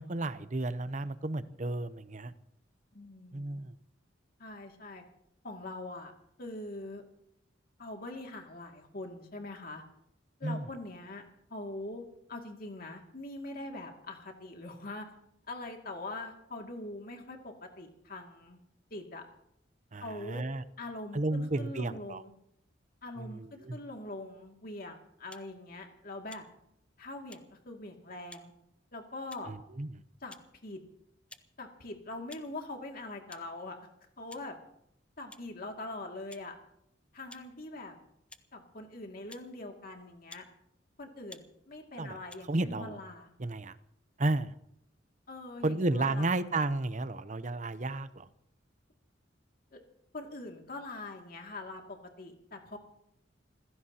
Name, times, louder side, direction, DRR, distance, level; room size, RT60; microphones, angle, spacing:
voice 1, 0.0-2.3 3.3-3.7 10.4-10.7 19.9-20.6 21.1-22.2 23.2-23.8 29.5-29.9 42.0-42.2 42.5-43.0 43.4-43.8 44.2-44.5 45.6-48.3, right 2 dB, 40° right, 13 dB, 0.8 m, -32 dB
voice 2, 2.9-3.6 4.4-5.0 5.4-6.1 6.4-7.0 7.8-9.8 10.4-12.0 12.3-15.1 15.5-18.6 18.9-19.2 20.0-20.4 20.8-22.3 23.0-26.4 27.0-28.5 28.9-29.5 30.2-30.3 30.6-30.8 31.6-33.8 34.2-34.6 35.2-36.6 37.1-38.0 38.5-40.5 41.0-43.3 45.3-46.3 49.7-49.8 50.1-52.8, left 2 dB, 50° left, 2 dB, 2.4 m, -43 dB
sound 1, 25.3-25.5 26.3-26.5 27.3-27.4 28.3-28.5 29.3-29.6 30.3-30.5 31.3-31.5 32.3-32.5 33.3-33.4 34.3-34.5 35.3-35.5 36.3-36.4 37.3-37.4 38.3-38.4 39.3-39.5 40.3-40.5 41.3-41.5 42.3-42.4, left 2 dB, 5° left, 0.6 m, -51 dB
27.5 x 16.0 x 2.9 m, 0.76 s
head